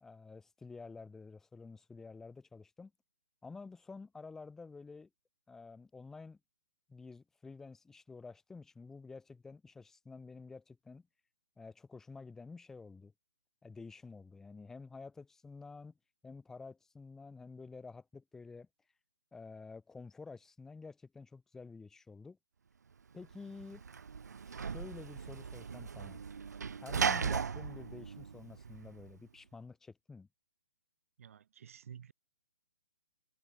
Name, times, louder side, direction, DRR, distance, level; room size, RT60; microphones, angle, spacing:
voice 1, 0.0-2.9 3.4-5.1 5.5-6.4 6.9-11.1 11.6-13.1 13.6-15.9 16.2-18.7 19.3-22.4 23.1-23.8 24.5-26.2 26.8-30.3, left 4 dB, 5° left, 1.2 m, -50 dB
Sliding door / Slam, 23.2-29.1, right 6 dB, 85° right, 1.2 m, -37 dB
voice 2, 31.2-32.1, right 8 dB, 55° right, 2.2 m, -51 dB
hypercardioid pair, 160°, 9 cm